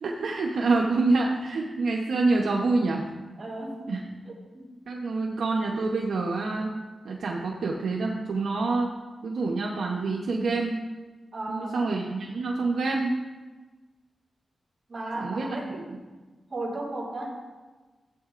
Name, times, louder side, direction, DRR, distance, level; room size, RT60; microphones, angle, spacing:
voice 1, 0.0-3.0 3.9-4.0 4.9-6.7 7.0-8.9 9.2-10.8 11.5-13.1 15.2-16.0, right 3 dB, 80° right, -1 dB, 0.9 m, -27 dB
voice 2, 3.4-4.0 4.2-4.7 11.3-11.9 14.9-15.8 16.5-17.4, right 2 dB, 45° right, -3 dB, 2.8 m, -35 dB
14.5 x 8.2 x 2.5 m, 1.3 s
cardioid pair, 75°, 0 cm